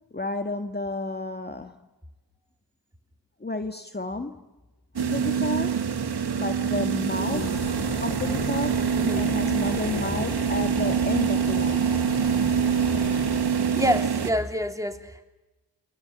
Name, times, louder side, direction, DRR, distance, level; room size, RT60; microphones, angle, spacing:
voice 1, 0.1-1.8 3.4-4.4 5.0-5.8 6.4-7.5 8.0-8.8 9.1-11.8, left 2 dB, 25° left, 1.9 m, -31 dB
sound 1, 5.0-14.3, right 7 dB, 65° right, 2.4 m, -25 dB
voice 2, 7.2-7.6 8.9-9.3 13.8-15.2, equal, 10° right, 3.4 m, -28 dB
sound 2, 7.3-14.1, left 7 dB, 65° left, 1.3 m, -37 dB
28.5 x 24.5 x 8.2 m
cardioid pair, 45°, 41 cm